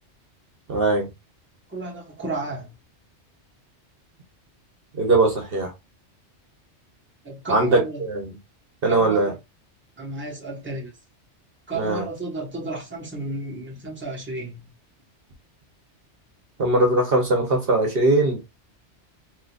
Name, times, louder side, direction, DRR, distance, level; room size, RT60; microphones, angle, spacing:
voice 1, 0.7-1.1 5.0-5.7 7.5-8.3 8.8-9.3 11.8-12.0 16.6-18.4, right 2 dB, 55° right, 1.0 m, -20 dB
voice 2, 1.7-2.7 7.2-8.0 8.8-9.4 10.0-11.0 11.7-14.7, right 2 dB, 10° right, 1.1 m, -33 dB
3.8 x 2.8 x 2.3 m
omnidirectional pair, 1.2 m